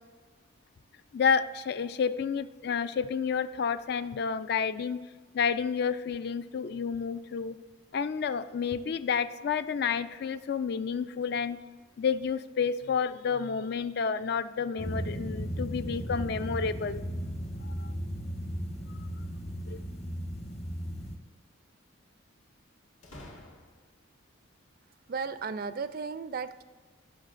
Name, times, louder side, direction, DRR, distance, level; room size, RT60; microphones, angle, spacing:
voice 1, 1.1-5.0 5.3-7.6 7.9-11.6 12.0-17.0 17.6-17.9 19.7-19.8, left 6 dB, 50° left, 14 dB, 0.3 m, -30 dB
sound 1, 14.8-21.2, equal, 30° left, 0.9 m, -36 dB
sound 2, 19.6-20.6 23.0-24.1, left 1 dB, 75° left, 1.7 m, -51 dB
voice 2, 25.1-26.6, right 5 dB, 45° right, 13 dB, 0.3 m, -35 dB
17.0 x 6.2 x 2.5 m, 1.4 s
head